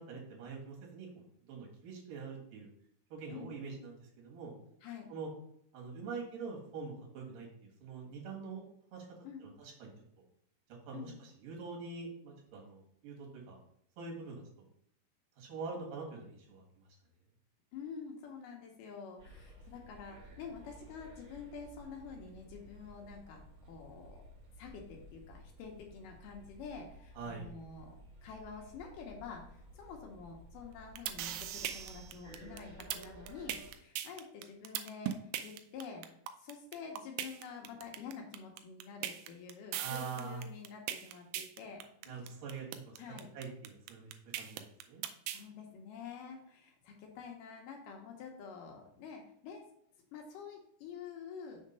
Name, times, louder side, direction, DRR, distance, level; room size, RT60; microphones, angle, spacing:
voice 1, 0.0-2.7 3.1-4.5 5.1-5.3 5.7-8.6 8.9-9.0 9.4-9.9 10.9-13.6 14.0-14.4 15.4-16.8 27.2-27.5 39.8-40.4 42.1-43.0 43.3-45.0, right 4 dB, 60° right, -1 dB, 3.1 m, -44 dB
voice 2, 17.7-23.4 23.7-24.2 24.6-28.0 28.2-36.0 36.4-42.2 43.0-43.3 45.3-49.7 50.1-51.6, left 6 dB, 75° left, 2 dB, 2.1 m, -48 dB
sound 1, 19.2-33.7, right 1 dB, 40° right, 1.9 m, -55 dB
sound 2, 30.7-45.4, right 11 dB, 90° right, 2.7 m, -39 dB
6.4 x 3.6 x 5.4 m, 0.69 s
omnidirectional pair, 4.7 m